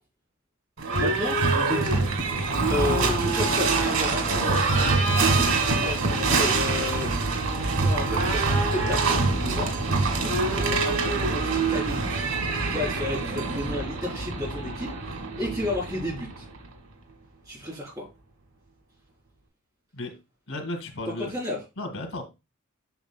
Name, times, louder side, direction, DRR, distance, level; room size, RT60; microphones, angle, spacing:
Livestock farm animals working animals / Bell, 0.8-16.7, right 3 dB, 85° right, 1.9 m, -25 dB
voice 1, 1.0-2.0 2.7-4.6 5.7-7.1 7.8-9.0 9.4-9.7 10.2-12.2 12.7-16.4 17.5-18.0 21.3-21.6, left 2 dB, 20° right, 3.4 m, -32 dB
voice 2, 20.5-21.3 21.8-22.2, left 2 dB, 90° left, 1.9 m, -34 dB
8.0 x 6.4 x 2.2 m
head